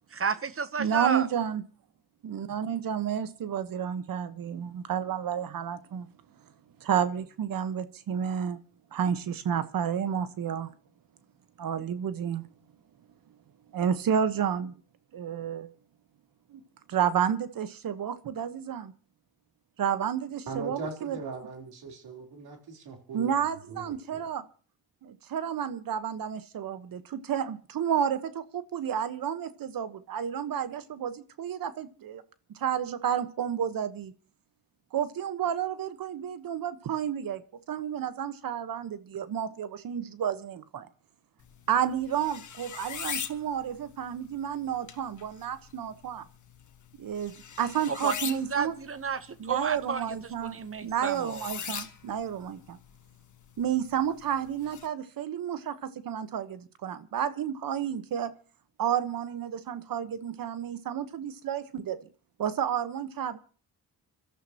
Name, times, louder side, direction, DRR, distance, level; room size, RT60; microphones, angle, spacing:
voice 1, 0.1-1.3 47.9-50.1 50.4-51.5, right 6 dB, 35° right, 0.9 m, -31 dB
voice 2, 0.8-1.6 2.2-6.1 6.8-8.6 8.9-10.7 11.6-12.4 13.7-14.7 15.1-15.7 16.5-16.6 16.9-18.9 19.8-21.2 23.1-24.4 25.0-32.2 32.5-34.1 34.9-37.4 37.7-40.9 41.7-46.2 47.0-48.7 49.4-52.8 53.6-58.3 58.8-62.0 62.4-63.4, right 8 dB, 65° right, 1.3 m, -31 dB
voice 3, 20.5-23.3 23.7-24.3, right 4 dB, 85° right, 3.7 m, -40 dB
sound 1, 41.4-54.9, left 8 dB, 50° left, 1.6 m, -42 dB
26.0 x 13.5 x 3.0 m
cardioid pair, 85°, 37 cm